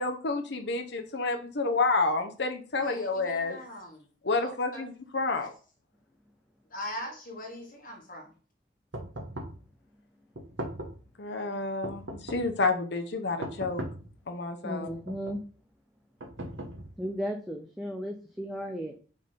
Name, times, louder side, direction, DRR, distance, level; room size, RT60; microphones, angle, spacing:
voice 1, 0.0-3.6 4.2-5.5 11.2-13.8 14.3-14.9, left 3 dB, 60° left, 5 dB, 0.8 m, -29 dB
voice 2, 2.8-4.0 4.4-4.9 6.7-8.3, left 1 dB, 45° left, 1 dB, 1.8 m, -41 dB
sound 1, 8.9-9.7 10.3-11.1 11.8-12.6 13.4-14.1 14.9-15.5 16.2-17.1, right 1 dB, 70° right, 1.1 m, -39 dB
voice 3, 14.6-15.4 17.0-18.9, equal, ahead, 1 dB, 0.5 m, -35 dB
5.4 x 3.8 x 5.5 m, 0.39 s
head